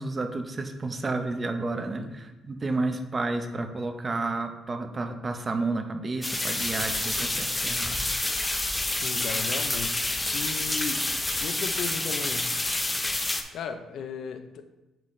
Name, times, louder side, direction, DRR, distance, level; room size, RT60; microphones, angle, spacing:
voice 1, 0.0-8.0, right 3 dB, 30° right, 6 dB, 0.8 m, -31 dB
sound 1, 6.2-13.4, left 2 dB, 15° left, 0.7 m, -28 dB
voice 2, 9.0-11.1 11.4-12.6 13.5-14.7, left 6 dB, 75° left, 9 dB, 0.6 m, -36 dB
8.9 x 4.0 x 3.2 m, 1.0 s
cardioid pair, 90°, 0 cm